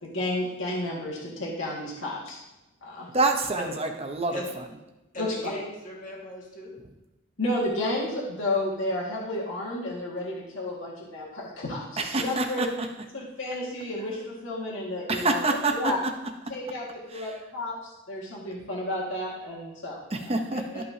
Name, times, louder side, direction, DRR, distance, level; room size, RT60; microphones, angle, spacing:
voice 1, 0.0-2.4 2.8-3.1 5.2-5.5 7.4-11.8 12.2-12.7 13.1-15.4 15.7-16.0 16.5-17.8 18.1-20.0, left 1 dB, 65° left, -4 dB, 1.8 m, -31 dB
voice 2, 3.1-4.4 12.0-12.9 15.1-15.9 17.1-17.3 20.1-20.8, right 3 dB, 30° right, 5 dB, 0.7 m, -27 dB
voice 3, 5.1-6.7 20.5-20.8, equal, 40° left, -3 dB, 2.0 m, -37 dB
12.5 x 5.5 x 2.8 m, 0.99 s
head